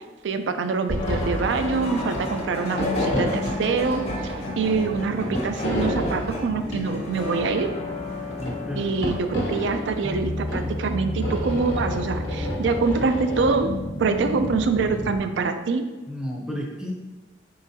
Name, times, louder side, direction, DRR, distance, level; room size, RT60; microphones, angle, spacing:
voice 1, 0.2-7.7 8.8-13.7 14.0-15.8, right 4 dB, 75° right, 8 dB, 0.4 m, -25 dB
sound 1, 0.9-1.7 2.0-2.4 2.7-4.4 4.7-6.3 8.1-8.5 9.0-9.8 10.5-13.6, equal, 75° left, 1.0 m, -29 dB
sound 2, 1.0-15.2, left 2 dB, 35° left, 0.8 m, -31 dB
voice 2, 8.4-9.1 16.1-16.9, equal, 5° right, -1 dB, 0.6 m, -32 dB
4.5 x 3.7 x 2.7 m, 1.2 s
head